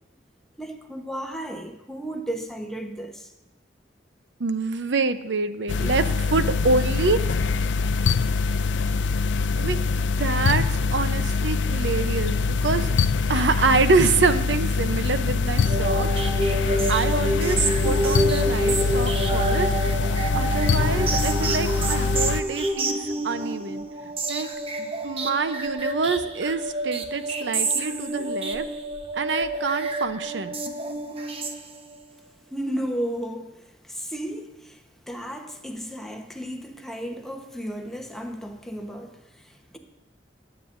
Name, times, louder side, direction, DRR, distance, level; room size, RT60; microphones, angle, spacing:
voice 1, 0.6-3.3 32.5-39.8, right 1 dB, 5° left, 2 dB, 1.0 m, -34 dB
voice 2, 4.4-7.2 9.6-9.8 10.2-12.9 13.3-16.1 16.9-19.7 20.3-23.9 24.3-24.5 25.0-28.7 29.2-30.5, right 4 dB, 85° right, 11 dB, 0.7 m, -26 dB
sound 1, 5.7-22.4, left 4 dB, 90° left, 0.4 m, -24 dB
sound 2, 15.7-32.1, right 2 dB, 35° right, 0.9 m, -28 dB
19.0 x 9.0 x 2.6 m, 1.1 s
head